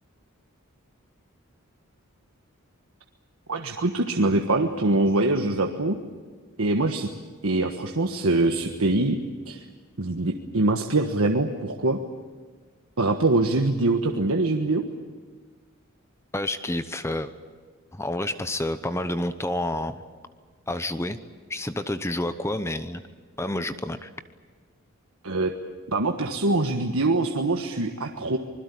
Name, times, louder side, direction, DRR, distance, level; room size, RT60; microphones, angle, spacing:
voice 1, 3.5-6.0 6.6-7.1 7.4-9.2 9.5-9.6 10.0-12.0 13.0-14.8 25.2-25.5 25.9-28.4, right 2 dB, 80° right, 4 dB, 1.4 m, -23 dB
voice 2, 16.3-17.3 17.9-20.0 20.7-21.2 21.5-23.0 23.4-24.1, left 1 dB, 10° left, 11 dB, 0.8 m, -29 dB
25.5 x 21.0 x 8.5 m, 1.5 s
head